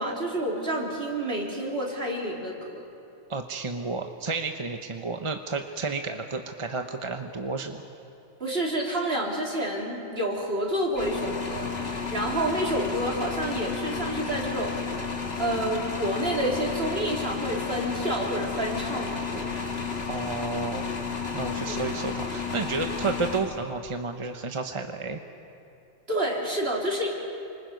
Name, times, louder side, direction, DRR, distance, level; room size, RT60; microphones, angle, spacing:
voice 1, 0.0-2.8 8.4-14.7 15.4-19.5 21.6-21.9 26.1-27.1, right 1 dB, 55° right, -3 dB, 4.0 m, -29 dB
voice 2, 3.3-7.9 20.1-21.0 21.3-25.2, right 4 dB, 30° right, 5 dB, 0.9 m, -31 dB
sound 1, 11.0-24.0, left 5 dB, 60° left, 2.0 m, -32 dB
29.0 x 25.5 x 5.3 m, 2.6 s
omnidirectional pair, 1.2 m